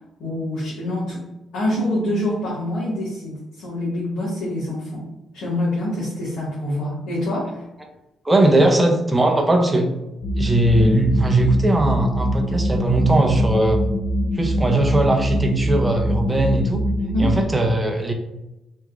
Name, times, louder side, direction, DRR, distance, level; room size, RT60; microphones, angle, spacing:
voice 1, 0.2-1.2 1.5-5.0 5.3-7.6 17.0-17.4, left 1 dB, 80° left, -11 dB, 1.4 m, -25 dB
voice 2, 8.2-9.9 10.4-13.8 14.3-16.8 17.2-18.1, right 1 dB, 15° right, 3 dB, 0.5 m, -19 dB
sound 1, 10.2-17.4, equal, 45° left, 0.7 m, -23 dB
3.4 x 2.9 x 2.4 m, 0.95 s
cardioid pair, 90°, 0 cm